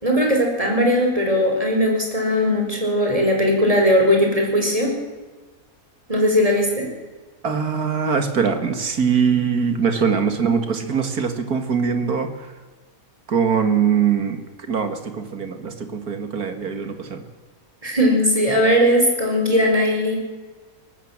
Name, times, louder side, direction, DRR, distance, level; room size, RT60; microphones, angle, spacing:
voice 1, 0.0-4.9 6.1-6.9 17.8-20.2, equal, 25° right, 1 dB, 5.2 m, -18 dB
voice 2, 7.4-12.5 13.3-17.2, right 6 dB, 80° right, 8 dB, 2.6 m, -22 dB
22.0 x 18.5 x 7.4 m, 1.3 s
omnidirectional pair, 1.6 m